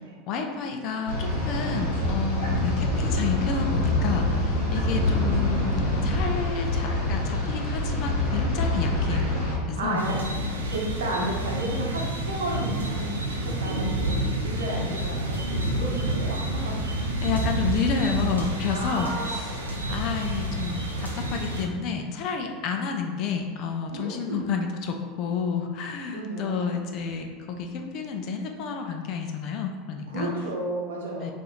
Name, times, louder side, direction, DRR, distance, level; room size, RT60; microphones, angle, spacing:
voice 1, 0.3-5.8 6.0-9.3 9.7-10.0 17.2-19.6 19.9-30.3 31.2-31.3, left 6 dB, 50° left, 3 dB, 0.4 m, -30 dB
sound 1, 1.1-9.6, left 1 dB, 80° left, 0.9 m, -25 dB
voice 2, 4.7-6.1 9.7-10.3 10.7-16.7 18.7-19.8 20.1-20.6 22.4-22.5 23.9-24.5 26.1-26.7 30.1-31.3, right 2 dB, 70° right, -3 dB, 0.8 m, -34 dB
sound 2, 10.0-21.6, right 1 dB, 85° right, 0.4 m, -29 dB
2.7 x 2.5 x 4.0 m, 1.5 s
figure-of-eight pair, 80°, 0 cm